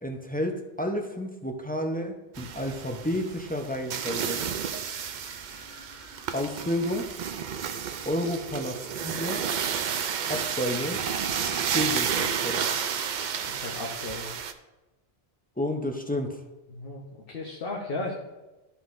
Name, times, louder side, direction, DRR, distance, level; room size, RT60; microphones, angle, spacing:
voice 1, 0.0-4.4 6.3-7.1 8.0-9.4 10.3-11.0 11.7-12.7 15.6-16.4, left 1 dB, 10° left, 3 dB, 0.5 m, -31 dB
sound 1, 2.3-14.5, right 7 dB, 55° right, 0.6 m, -31 dB
sound 2, 3.9-12.3, right 3 dB, 85° right, 1.4 m, -51 dB
voice 2, 13.4-14.3 16.7-18.1, left 2 dB, 60° left, -1 dB, 1.2 m, -35 dB
13.0 x 5.6 x 2.6 m, 1.1 s
omnidirectional pair, 1.1 m